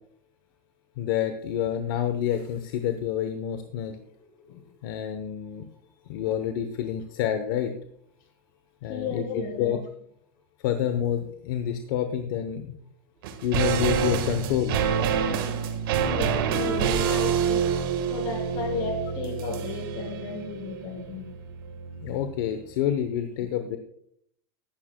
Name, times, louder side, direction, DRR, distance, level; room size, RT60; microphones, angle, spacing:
voice 1, 1.0-4.0 4.5-5.7 6.1-7.7 8.8-9.8 10.6-12.8 13.4-14.8 22.0-23.8, left 10 dB, 60° left, 8 dB, 0.9 m, -28 dB
voice 2, 8.9-9.8 16.0-17.7 18.1-21.3, left 4 dB, 40° left, 2 dB, 3.2 m, -34 dB
sound 1, 13.2-22.6 22.9-23.0, right 7 dB, 70° right, 1.5 m, -27 dB
15.0 x 11.5 x 2.2 m, 0.68 s
supercardioid pair, 165°, 12 cm